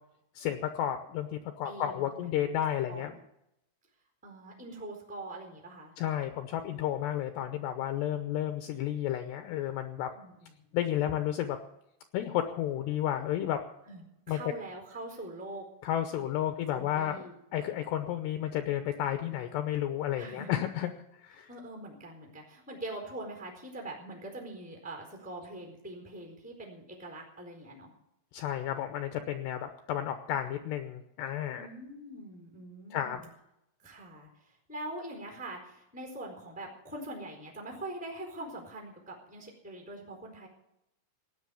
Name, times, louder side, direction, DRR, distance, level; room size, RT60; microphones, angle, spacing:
voice 1, 0.4-3.1 6.0-10.1 10.7-11.6 12.1-13.6 14.3-14.4 15.8-17.2 17.5-20.9 21.2-21.5 28.3-31.7 32.9-33.2, left 11 dB, 80° left, 7 dB, 2.6 m, -32 dB
voice 2, 1.6-2.5 2.9-3.2 4.2-5.9 10.1-10.7 13.8-15.7 16.2-17.3 20.2-20.6 21.5-27.9 31.6-33.3 33.8-40.5, right 1 dB, ahead, 1 dB, 3.5 m, -43 dB
17.0 x 10.5 x 7.0 m, 0.83 s
omnidirectional pair, 5.8 m